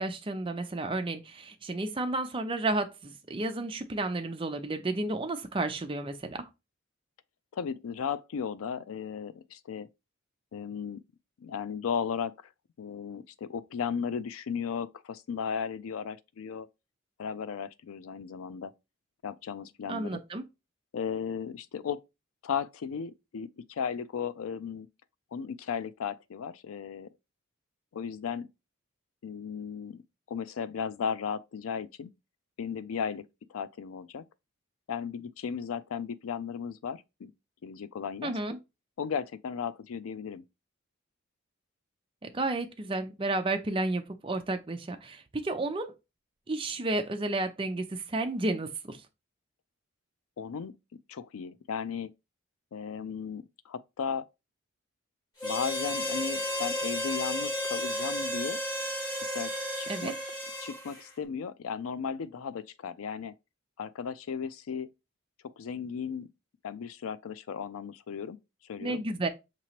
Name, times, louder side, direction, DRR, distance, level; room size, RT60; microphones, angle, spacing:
voice 1, 0.0-6.5 19.9-20.4 38.2-38.6 42.2-45.9 46.5-49.0 59.9-60.1 68.8-69.3, right 2 dB, 25° right, 0.5 m, -32 dB
voice 2, 7.5-9.9 10.5-11.0 11.4-12.5 12.8-16.7 17.2-18.7 19.2-20.2 20.9-22.0 22.4-24.9 25.3-27.1 27.9-28.5 29.2-30.0 30.3-32.1 32.6-33.2 33.5-34.2 34.9-37.3 37.6-38.3 39.0-40.4 50.4-50.8 51.1-52.1 52.7-54.3 55.4-58.6 59.2-60.1 60.6-63.3 63.8-64.9 65.6-66.3 66.6-68.4 68.6-69.0, left 6 dB, 85° left, 0.4 m, -35 dB
Harmonica, 55.4-61.0, left 1 dB, 20° left, 1.8 m, -33 dB
5.8 x 3.0 x 2.8 m
head